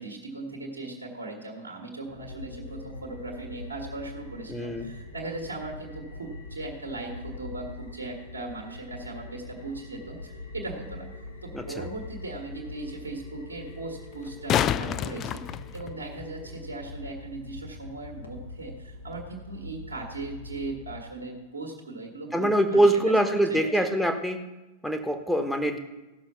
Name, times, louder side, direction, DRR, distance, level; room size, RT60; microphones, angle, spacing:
voice 1, 0.0-23.1 23.5-23.9, right 2 dB, 75° right, 1 dB, 1.8 m, -38 dB
sound 1, 2.0-21.0, left 2 dB, 80° left, 1.4 m, -43 dB
voice 2, 4.5-4.9 11.5-11.9 22.3-24.4 24.8-25.8, right 1 dB, ahead, 5 dB, 1.2 m, -24 dB
sound 2, 11.3-11.4 14.1-16.3 19.1-19.2, left 10 dB, 30° left, 0.4 m, -28 dB
15.5 x 6.3 x 5.8 m, 1.1 s
figure-of-eight pair, 90°, 0 cm